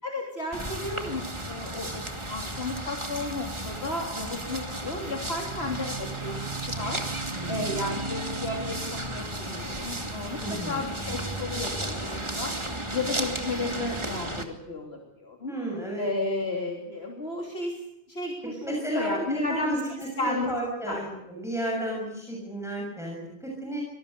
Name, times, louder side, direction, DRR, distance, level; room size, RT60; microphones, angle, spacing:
voice 1, 0.0-7.0 7.5-12.5 12.9-15.6 16.0-17.8 18.1-19.8 20.2-20.5 20.9-21.0, left 2 dB, 70° left, 1 dB, 3.4 m, -33 dB
sound 1, 0.5-14.5, right 1 dB, 25° right, 2.6 m, -34 dB
voice 2, 7.3-7.7 10.4-10.8 15.5-16.1 18.6-19.9 20.2-23.8, right 1 dB, 5° right, -2 dB, 6.7 m, -32 dB
sound 2, 10.2-13.3, right 2 dB, 25° left, 6.0 m, -42 dB
25.5 x 19.5 x 6.7 m, 0.86 s
omnidirectional pair, 1.1 m